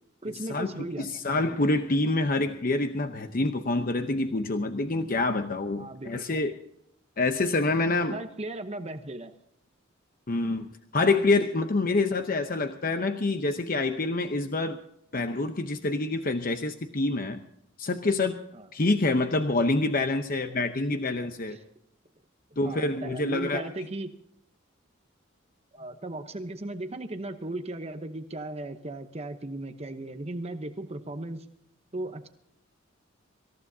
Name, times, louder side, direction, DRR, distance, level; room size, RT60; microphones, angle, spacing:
voice 1, 0.2-1.1 5.8-6.1 8.1-9.3 18.5-18.7 20.9-21.0 21.5-21.6 22.6-24.1 25.7-31.5 31.9-32.3, right 2 dB, 30° right, 7 dB, 0.9 m, -36 dB
voice 2, 1.0-6.5 7.2-8.2 10.3-10.7 10.9-14.8 15.1-17.4 17.8-18.4 18.7-21.6 22.6-23.7, left 2 dB, 45° left, 7 dB, 0.8 m, -26 dB
25.5 x 15.0 x 2.8 m, 0.76 s
head